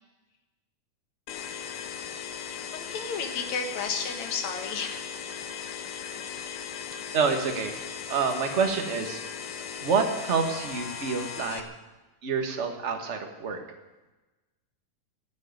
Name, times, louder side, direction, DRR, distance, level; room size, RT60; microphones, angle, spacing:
sound 1, 1.3-11.6, left 7 dB, 85° left, 2.7 m, -38 dB
voice 1, 2.7-5.0, left 5 dB, 60° left, 6 dB, 2.8 m, -32 dB
voice 2, 7.1-7.7 8.1-9.2 9.8-11.6 12.2-13.6, right 5 dB, 35° right, 5 dB, 1.2 m, -27 dB
15.5 x 9.7 x 9.5 m, 1.1 s
omnidirectional pair, 3.7 m